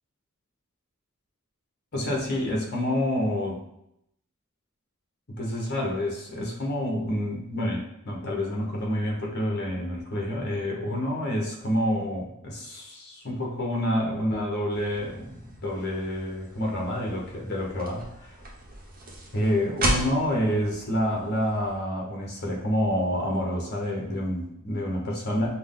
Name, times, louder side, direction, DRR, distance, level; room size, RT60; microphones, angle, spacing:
voice 1, 1.9-3.6 5.3-18.4 19.3-25.5, equal, 50° left, -1 dB, 1.1 m, -28 dB
sound 1, 14.7-21.7, right 1 dB, 40° right, 0.9 m, -35 dB
6.0 x 2.2 x 3.7 m, 0.79 s
head